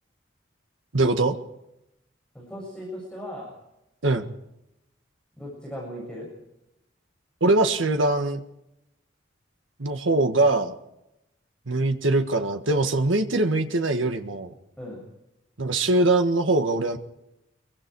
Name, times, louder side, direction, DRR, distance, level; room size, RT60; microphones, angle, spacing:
voice 1, 0.9-1.4 4.0-4.3 7.4-8.4 9.8-10.7 11.7-14.5 15.6-17.0, right 2 dB, 90° right, 6 dB, 1.6 m, -22 dB
voice 2, 2.3-3.5 5.4-6.3 14.8-15.0, equal, 5° left, -4 dB, 7.4 m, -37 dB
26.5 x 23.5 x 4.7 m, 0.88 s
head